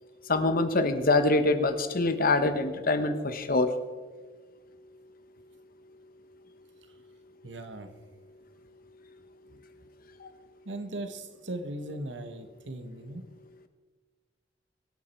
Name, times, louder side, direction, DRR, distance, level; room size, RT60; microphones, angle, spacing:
voice 1, 0.3-3.7, left 2 dB, 50° left, 9 dB, 1.3 m, -24 dB
voice 2, 7.4-7.9 9.5-9.6 10.6-13.2, right 1 dB, 85° right, 7 dB, 1.5 m, -38 dB
23.5 x 8.8 x 4.6 m, 1.4 s
head